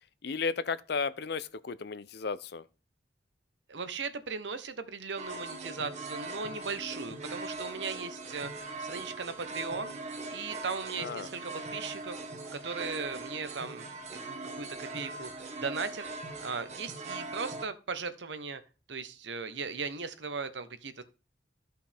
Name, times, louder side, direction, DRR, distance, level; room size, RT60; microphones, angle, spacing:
voice 1, 0.2-2.6 11.0-11.3, left 5 dB, 60° left, 0.6 m, -34 dB
voice 2, 3.7-10.0 10.3-12.2 12.5-13.8 14.3-16.0 16.4-18.6 18.9-21.0, right 5 dB, 75° right, 0.9 m, -38 dB
sound 1, 5.2-17.7, right 2 dB, 40° right, 1.3 m, -41 dB
13.5 x 5.8 x 3.4 m
head